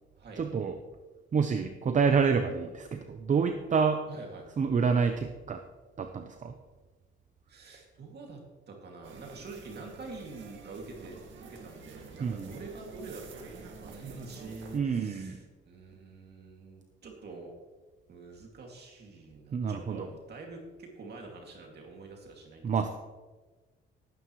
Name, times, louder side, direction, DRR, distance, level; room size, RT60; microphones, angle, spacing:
voice 1, 0.4-0.8 1.3-4.0 4.6-5.6 6.0-6.6 12.2-12.5 14.7-15.4 19.5-20.1 22.6-22.9, right 5 dB, 40° right, 7 dB, 0.7 m, -28 dB
voice 2, 4.1-4.6 7.5-13.4 13.7-17.5 18.1-22.9, right 3 dB, 55° right, 0 dB, 2.4 m, -46 dB
sound 1, 9.0-14.8, right 4 dB, 75° right, 1.9 m, -48 dB
18.0 x 9.3 x 3.1 m, 1.3 s
cardioid pair, 90°, 20 cm